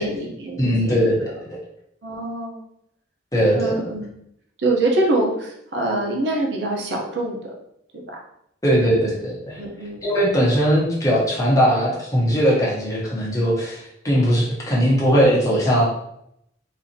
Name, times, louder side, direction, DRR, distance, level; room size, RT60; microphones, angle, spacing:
voice 1, 0.0-1.1 2.0-2.6 3.5-4.1 4.6-7.5 7.9-8.0 8.9-9.0 9.5-10.1 15.1-15.4, right 2 dB, 70° right, -1 dB, 0.8 m, -25 dB
voice 2, 0.6-1.6 3.3-3.8 8.6-9.6 10.0-15.8, equal, 20° left, -5 dB, 1.0 m, -19 dB
4.0 x 2.7 x 2.8 m, 0.76 s
head